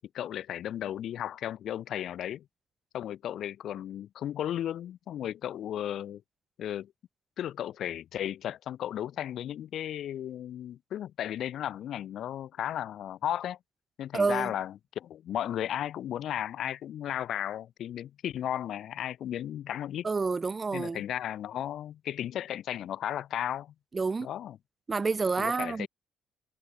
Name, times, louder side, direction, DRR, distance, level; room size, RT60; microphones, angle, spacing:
voice 1, 0.0-2.4 2.9-6.2 6.6-6.9 7.4-13.6 14.0-20.1 20.7-23.7 24.2-24.6 25.4-25.9, left 11 dB, 70° left, 0.8 m, -35 dB
voice 2, 14.1-14.5 20.0-21.0 23.9-24.3 24.9-25.9, right 4 dB, 30° right, 0.7 m, -28 dB
cardioid pair, 90°, 0 cm